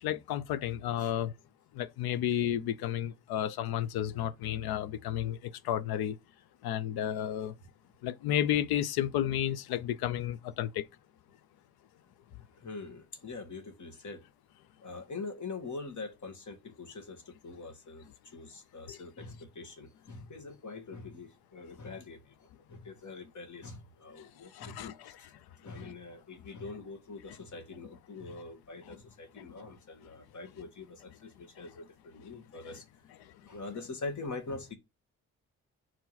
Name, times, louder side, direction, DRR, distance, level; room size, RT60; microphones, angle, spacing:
voice 1, 0.0-1.3 1.7-6.2 6.6-7.5 8.0-10.8 18.9-19.0 24.2-24.3 24.5-25.1 25.8-25.9, left 11 dB, 75° left, 0.7 m, -32 dB
voice 2, 12.6-14.2 14.8-25.2 25.6-33.1 33.4-34.7, left 3 dB, 50° left, 2.1 m, -44 dB
4.5 x 4.5 x 5.8 m
hypercardioid pair, 40°, 38 cm